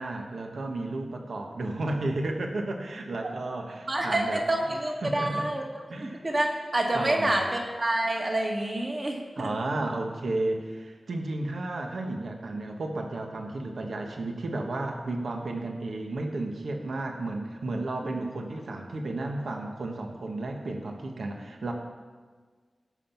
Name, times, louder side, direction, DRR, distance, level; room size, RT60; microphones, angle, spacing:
voice 1, 0.0-4.4 5.0-5.4 5.9-6.2 6.9-7.4 9.4-21.7, right 2 dB, 70° right, 3 dB, 1.4 m, -33 dB
voice 2, 3.9-5.6 6.0-9.5 18.0-18.2, right 1 dB, 35° right, 0 dB, 2.2 m, -28 dB
17.0 x 7.4 x 5.9 m, 1.5 s
wide cardioid pair, 125°, 0 cm